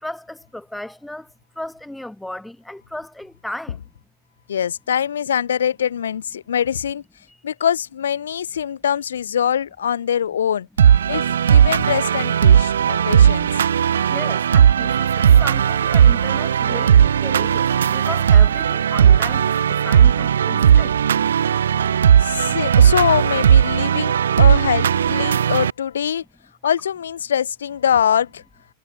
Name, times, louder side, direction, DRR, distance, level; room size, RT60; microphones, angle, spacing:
voice 1, 0.0-3.8 14.1-21.0, left 1 dB, 5° left, 1.2 m, -35 dB
voice 2, 4.5-7.0 7.4-10.7 11.1-13.5 22.2-26.2 26.6-28.4, left 8 dB, 65° left, 0.3 m, -23 dB
sound 1, 10.8-25.7, right 8 dB, 65° right, 0.3 m, -16 dB
figure-of-eight pair, 90°, 0 cm